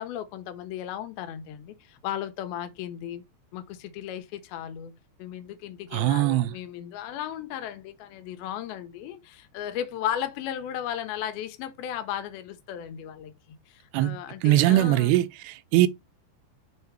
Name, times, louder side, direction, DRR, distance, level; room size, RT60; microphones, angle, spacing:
voice 1, 0.0-3.2 3.5-15.1, left 10 dB, 75° left, 2.5 m, -35 dB
voice 2, 5.9-6.6 13.9-15.9, right 15 dB, 80° right, 2.6 m, -22 dB
7.0 x 3.8 x 4.6 m
omnidirectional pair, 4.9 m